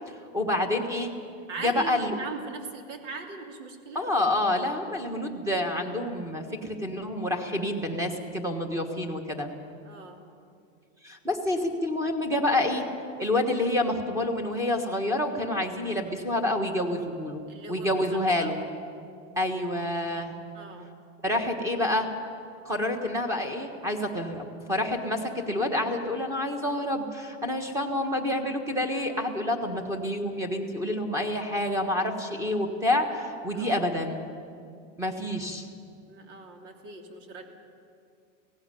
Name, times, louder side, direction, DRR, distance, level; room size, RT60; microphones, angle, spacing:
voice 1, 0.3-1.1 1.6-2.2 3.9-9.5 11.0-12.9 13.2-17.4 17.7-18.6 19.4-20.3 21.2-22.1 22.6-34.3 35.0-35.7, left 1 dB, 10° right, 3 dB, 1.4 m, -28 dB
voice 2, 1.5-4.1 9.8-10.2 17.5-18.8 20.5-20.9 33.5-33.9 36.1-37.4, right 4 dB, 75° right, 3 dB, 3.2 m, -40 dB
17.0 x 16.5 x 9.2 m, 2.3 s
supercardioid pair, 170°, 37 cm